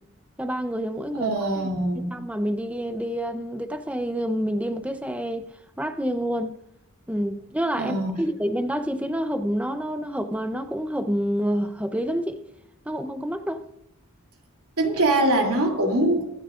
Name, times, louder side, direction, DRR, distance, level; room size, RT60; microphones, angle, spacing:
voice 1, 0.4-1.7 1.9-5.5 5.8-6.5 7.1-12.4 12.9-13.6, equal, 5° right, 0.7 m, -28 dB
voice 2, 1.2-2.1 7.8-8.1 14.8-16.2, right 1 dB, 85° right, 3.0 m, -22 dB
24.5 x 10.5 x 2.5 m
head